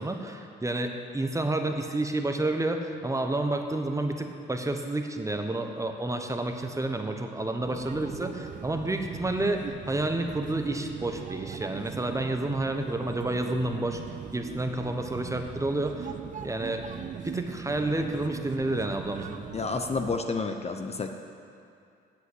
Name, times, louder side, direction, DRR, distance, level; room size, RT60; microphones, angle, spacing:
voice 1, 0.0-14.0 14.3-16.1 16.4-16.8 17.2-19.4, right 2 dB, 15° right, 5 dB, 0.9 m, -30 dB
sound 1, 7.6-20.2, right 7 dB, 40° right, 0.4 m, -40 dB
voice 2, 19.5-21.1, left 4 dB, 30° left, 6 dB, 0.7 m, -30 dB
8.4 x 8.1 x 7.9 m, 2.4 s
cardioid pair, 90°, 20 cm